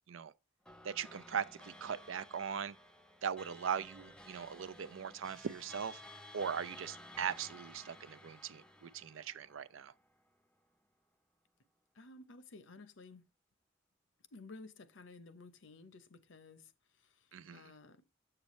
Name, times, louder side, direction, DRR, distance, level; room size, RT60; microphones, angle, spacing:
sound 1, 0.7-10.3, left 1 dB, 5° left, 0.6 m, -55 dB
voice 1, 0.8-2.8 3.2-6.0 6.3-9.9 17.3-17.6, right 7 dB, 80° right, 0.5 m, -40 dB
voice 2, 11.9-13.2 14.3-18.0, left 3 dB, 70° left, 0.8 m, -54 dB
8.0 x 6.8 x 3.1 m
head